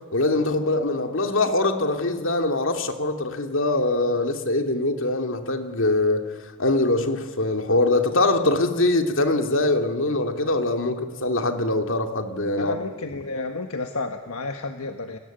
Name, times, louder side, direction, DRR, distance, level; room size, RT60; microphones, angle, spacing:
voice 1, 0.1-6.3 6.6-12.8, left 2 dB, 60° left, 2.6 m, -23 dB
voice 2, 12.6-15.2, left 3 dB, 75° left, 1.5 m, -31 dB
29.0 x 22.5 x 9.2 m
head